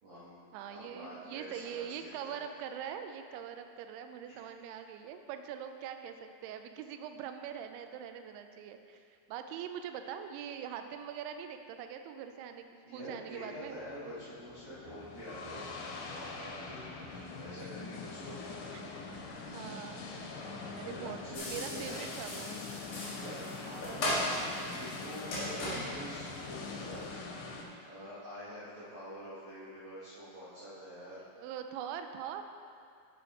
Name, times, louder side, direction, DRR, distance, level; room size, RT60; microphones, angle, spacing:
voice 1, 0.0-2.4 4.3-4.5 12.8-18.7 20.3-22.0 22.9-27.3 27.8-31.2, equal, 60° right, -13 dB, 1.4 m, -47 dB
voice 2, 0.5-12.7 12.9-13.8 17.6-17.7 19.4-20.1 20.8-22.6 31.4-32.4, right 8 dB, 90° right, 7 dB, 2.3 m, -43 dB
sound 1, 13.6-27.7, left 4 dB, 90° left, 3.1 m, -43 dB
sound 2, 21.3-27.1, left 1 dB, 55° left, 2.0 m, -38 dB
7.3 x 7.1 x 4.2 m, 2.3 s
omnidirectional pair, 5.1 m